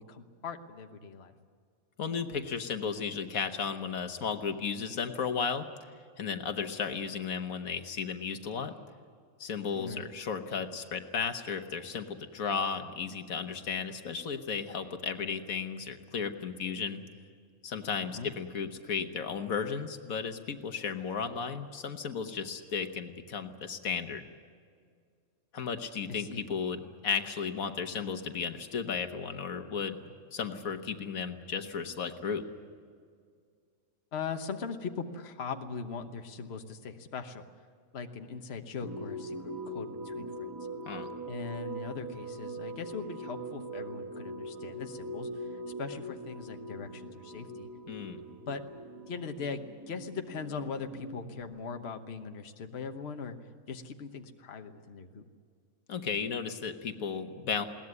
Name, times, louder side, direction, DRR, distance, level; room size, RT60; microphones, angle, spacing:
voice 1, 0.0-1.3 9.7-10.0 18.2-18.3 26.1-26.5 34.1-37.4 37.9-40.5 41.2-47.7 48.5-48.6 49.1-53.4 53.7-55.2, left 5 dB, 50° left, 6 dB, 1.3 m, -40 dB
voice 2, 2.0-5.7 6.2-8.7 9.4-17.0 17.6-24.2 25.5-30.0 30.3-32.4 40.8-41.1 47.9-48.2 55.9-57.7, left 6 dB, 80° left, 7 dB, 1.6 m, -34 dB
sound 1, 38.8-51.4, right 1 dB, 15° right, 1.7 m, -42 dB
21.5 x 18.0 x 9.6 m, 2.1 s
omnidirectional pair, 1.4 m